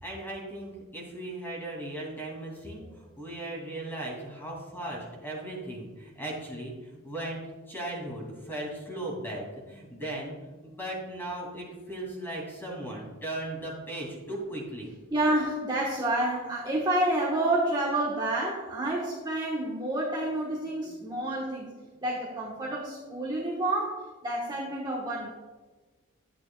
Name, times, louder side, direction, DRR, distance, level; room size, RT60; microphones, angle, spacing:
voice 1, 0.0-10.3 10.6-14.9, right 1 dB, 10° left, -3 dB, 2.6 m, -37 dB
voice 2, 15.1-21.7 22.0-25.3, right 1 dB, 20° right, -5 dB, 1.3 m, -29 dB
11.5 x 8.6 x 2.3 m, 1.3 s
head